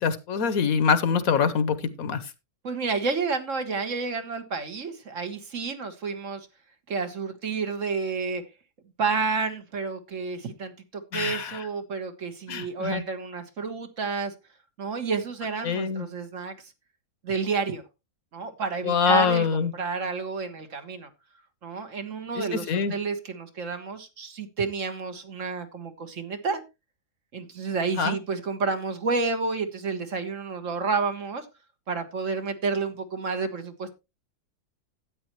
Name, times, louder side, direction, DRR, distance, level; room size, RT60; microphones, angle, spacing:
voice 1, 0.0-2.2 11.1-11.6 12.5-13.0 15.6-16.0 18.8-19.7 22.4-22.9 28.0-28.2, left 6 dB, 65° left, 1.3 m, -24 dB
voice 2, 2.6-6.5 6.9-8.4 9.0-14.3 14.8-16.7 17.2-17.8 18.3-21.1 21.6-26.6 27.3-31.5 31.9-33.9, right 4 dB, 55° right, 1.5 m, -30 dB
12.5 x 8.9 x 3.0 m
omnidirectional pair, 1.6 m